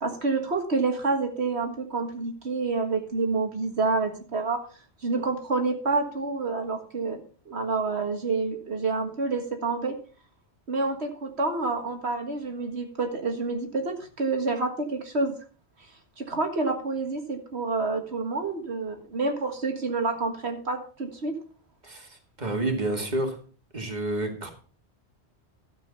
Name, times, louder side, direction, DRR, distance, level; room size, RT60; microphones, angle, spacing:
voice 1, 0.0-4.6 5.0-10.0 10.7-15.4 16.2-21.4, right 3 dB, 75° right, 4 dB, 2.0 m, -28 dB
voice 2, 22.4-23.3 23.7-24.5, right 2 dB, 40° right, 3 dB, 2.5 m, -28 dB
13.0 x 7.5 x 5.4 m, 0.39 s
omnidirectional pair, 1.1 m